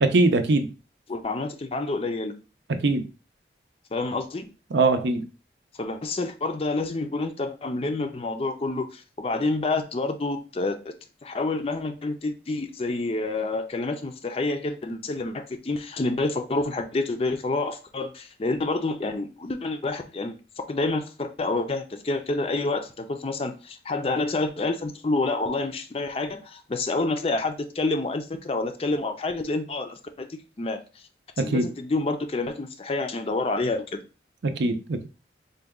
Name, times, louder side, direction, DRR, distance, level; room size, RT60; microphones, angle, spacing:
voice 1, 0.0-0.7 2.8-3.1 4.7-5.3 31.4-31.7 34.4-35.1, right 2 dB, 75° right, 0.5 m, -22 dB
voice 2, 1.1-2.3 3.9-4.5 5.8-10.9 11.2-20.4 20.7-30.3 30.6-30.8 31.4-34.0, left 2 dB, 30° left, 0.4 m, -28 dB
3.9 x 2.2 x 3.5 m
head